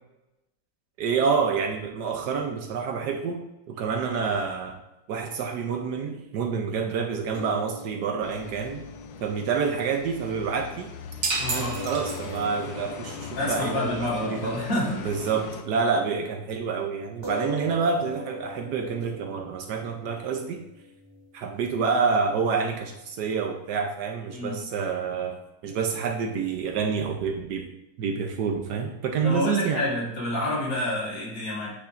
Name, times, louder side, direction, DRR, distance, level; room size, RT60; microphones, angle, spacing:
voice 1, 1.0-3.4 3.7-4.8 5.1-8.8 9.2-10.9 11.5-14.6 15.0-20.6 21.3-25.4 25.6-27.7 28.0-29.8, right 5 dB, 70° right, 4 dB, 1.2 m, -28 dB
sound 1, 7.3-15.9 16.2-16.3 17.2-23.8, equal, 30° right, 0.5 m, -42 dB
sound 2, 8.2-15.6, left 8 dB, 80° left, 1.3 m, -40 dB
sound 3, 11.2-12.7, right 3 dB, 85° right, 1.9 m, -30 dB
voice 2, 11.4-11.7 13.3-15.0 24.3-24.6 29.2-31.7, left 1 dB, 65° left, -7 dB, 3.3 m, -28 dB
8.4 x 5.6 x 2.5 m, 0.90 s
omnidirectional pair, 2.1 m